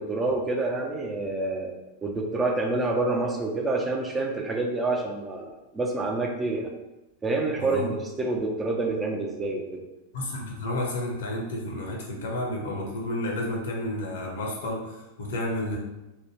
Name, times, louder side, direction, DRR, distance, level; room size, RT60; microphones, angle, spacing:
voice 1, 0.0-1.7 2.0-6.8 7.2-9.8, right 2 dB, 15° right, 1 dB, 0.4 m, -27 dB
voice 2, 7.6-7.9 10.1-15.8, left 1 dB, 60° left, 0 dB, 0.8 m, -31 dB
2.9 x 2.2 x 3.2 m, 0.99 s
figure-of-eight pair, 90°, 0 cm